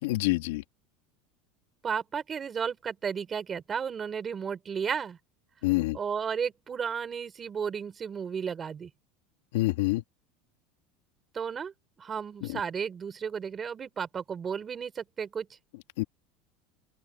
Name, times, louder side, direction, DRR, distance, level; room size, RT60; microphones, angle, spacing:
voice 1, 0.0-0.6 5.6-6.0 9.5-10.0 12.5-12.6 16.0-16.1, left 19 dB, 75° left, 2.6 m, -26 dB
voice 2, 1.8-5.2 5.9-8.9 11.3-11.7 12.0-15.5, right 7 dB, 15° right, 4.4 m, -33 dB
open air
supercardioid pair, 180°, 0 cm